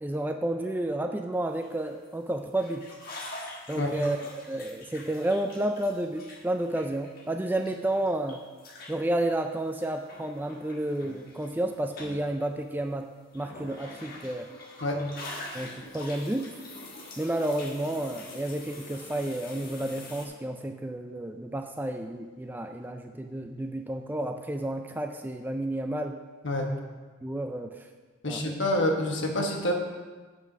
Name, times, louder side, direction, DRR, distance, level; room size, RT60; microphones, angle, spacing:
voice 1, 0.0-2.8 3.7-4.2 4.4-8.4 8.9-13.1 13.3-14.5 15.5-16.6 17.2-26.2 27.2-27.9 28.3-28.6, right 1 dB, 10° right, 5 dB, 0.3 m, -31 dB
sound 1, 1.5-2.1 2.6-7.7 8.1-11.7 11.9-12.4 13.3-20.3, left 2 dB, 45° left, 1.3 m, -45 dB
voice 2, 28.2-29.7, left 1 dB, 60° left, 2 dB, 1.2 m, -27 dB
7.7 x 5.8 x 6.0 m, 1.4 s
head